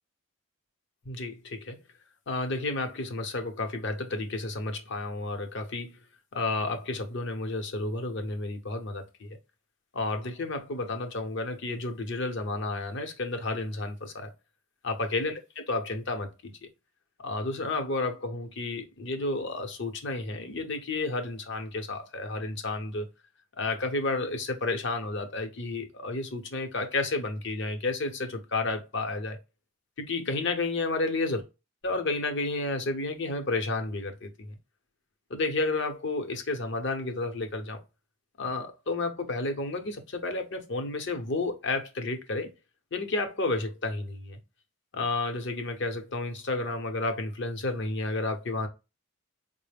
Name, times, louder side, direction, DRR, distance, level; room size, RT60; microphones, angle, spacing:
voice 1, 1.1-1.8 2.3-5.9 6.3-9.4 9.9-14.3 14.8-15.4 15.7-16.7 17.2-23.1 23.6-29.4 30.0-31.4 31.8-34.5 35.3-37.8 38.4-42.5 42.9-44.4 44.9-48.7, left 2 dB, 55° left, 0.7 m, -31 dB
4.7 x 2.0 x 3.3 m
head